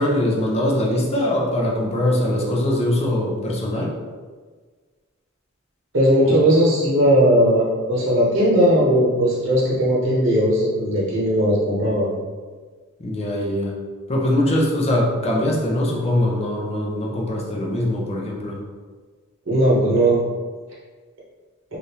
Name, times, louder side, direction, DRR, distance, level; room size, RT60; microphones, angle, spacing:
voice 1, 0.0-3.9 13.0-13.7 14.1-18.6, left 1 dB, 30° left, -2 dB, 0.6 m, -22 dB
voice 2, 5.9-7.6 7.9-12.1 19.5-20.2, equal, 65° right, -6 dB, 0.9 m, -17 dB
3.4 x 2.5 x 2.8 m, 1.5 s
head